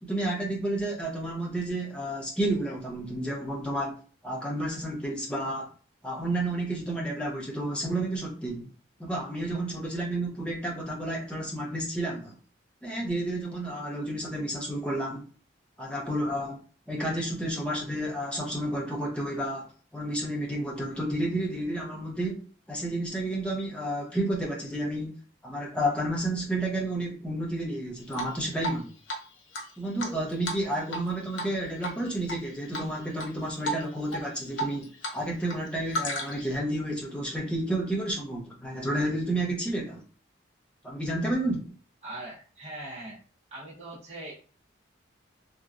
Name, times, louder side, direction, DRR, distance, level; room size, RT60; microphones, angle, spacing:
voice 1, 0.0-4.0 4.2-5.7 6.0-8.7 9.0-12.3 12.8-15.2 15.8-16.6 16.9-25.1 25.4-28.9 29.8-40.0 40.8-41.7, right 1 dB, 5° left, -2 dB, 0.6 m, -31 dB
Drip, 28.1-28.8 29.1-29.2 29.5-31.1 31.3-31.5 31.8-32.4 32.7-33.3 33.6-33.8 34.1-35.2 35.4-36.5, equal, 75° left, 0.7 m, -33 dB
voice 2, 42.0-43.2 43.5-44.3, right 2 dB, 35° right, -6 dB, 1.0 m, -41 dB
2.9 x 2.3 x 2.5 m, 0.39 s
head